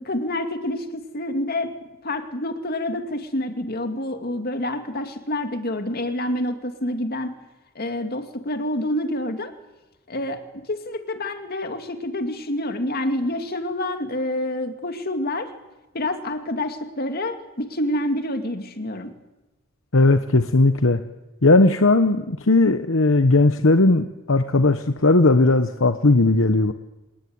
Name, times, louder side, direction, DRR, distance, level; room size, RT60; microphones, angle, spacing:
voice 1, 0.0-1.8 2.0-7.3 7.8-9.5 10.1-15.5 15.9-19.1, left 1 dB, 50° left, 7 dB, 2.3 m, -27 dB
voice 2, 19.9-21.0 21.4-26.7, left 2 dB, 65° left, 9 dB, 1.1 m, -17 dB
26.5 x 19.5 x 9.6 m, 1.0 s
head